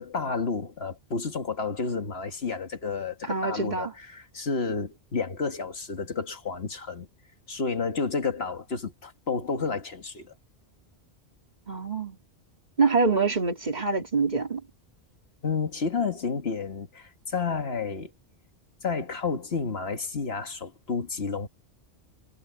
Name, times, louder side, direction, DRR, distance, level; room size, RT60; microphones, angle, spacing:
voice 1, 0.0-7.1 7.5-10.3 15.4-18.1 18.8-21.5, left 5 dB, 65° left, 1.9 m, -31 dB
voice 2, 3.3-3.9 11.7-12.2 12.8-14.6, right 4 dB, 40° right, 2.7 m, -25 dB
omnidirectional pair, 1.1 m